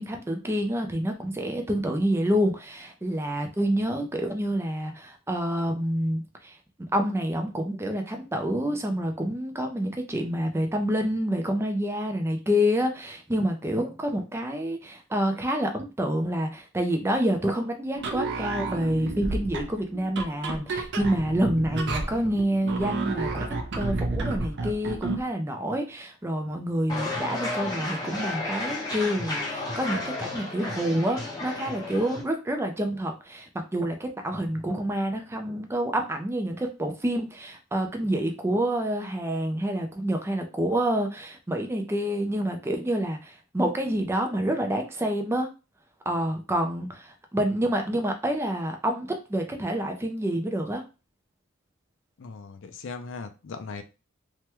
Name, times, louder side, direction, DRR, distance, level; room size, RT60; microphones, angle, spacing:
voice 1, 0.0-45.5 46.1-50.8, equal, 15° right, 0.4 m, -28 dB
sound 1, 18.0-25.3, right 3 dB, 60° right, 0.6 m, -31 dB
sound 2, 26.9-32.2, left 2 dB, 20° left, 0.8 m, -32 dB
voice 2, 52.2-53.8, left 4 dB, 65° left, 0.4 m, -38 dB
3.3 x 2.2 x 2.9 m
head